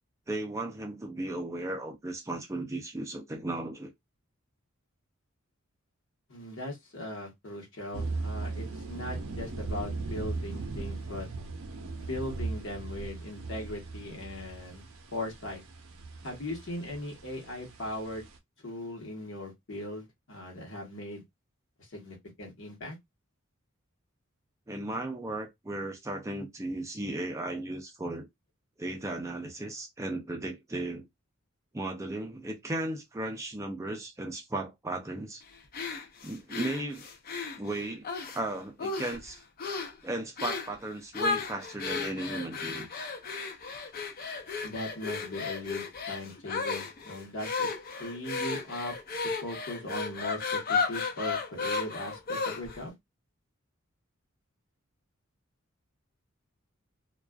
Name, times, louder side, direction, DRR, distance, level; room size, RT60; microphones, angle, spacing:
voice 1, 0.3-3.9 24.7-28.3 28.8-31.1 31.7-35.4 36.2-37.0 37.6-38.1 38.3-39.4 40.0-42.9, right 2 dB, 15° right, 0.4 m, -35 dB
voice 2, 6.3-11.3 11.9-14.8 15.1-15.6 16.2-18.2 18.6-21.2 21.8-23.0 44.6-47.7 48.0-48.9 49.4-52.9, left 1 dB, 65° left, 1.1 m, -39 dB
sound 1, 7.9-18.4, right 3 dB, 90° right, 0.6 m, -38 dB
sound 2, 35.7-38.4 38.8-39.3 39.6-40.0 40.4-40.7 41.1-52.8, left 4 dB, 45° left, 0.5 m, -34 dB
2.4 x 2.3 x 2.2 m
head